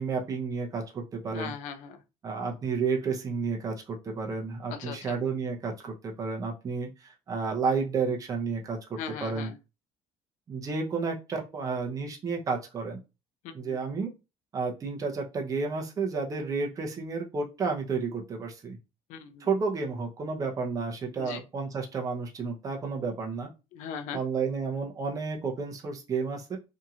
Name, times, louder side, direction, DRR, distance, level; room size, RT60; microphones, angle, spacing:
voice 1, 0.0-1.5 2.2-9.5 10.5-13.0 13.5-14.1 14.5-18.8 19.4-23.5 24.1-26.6, right 4 dB, 25° right, 0.7 m, -31 dB
voice 2, 1.3-2.0 4.7-5.2 9.0-9.5 13.4-13.8 19.1-19.5 21.2-21.4 23.7-24.2, left 7 dB, 75° left, 0.5 m, -39 dB
2.8 x 2.7 x 2.3 m
cardioid pair, 150°, 13 cm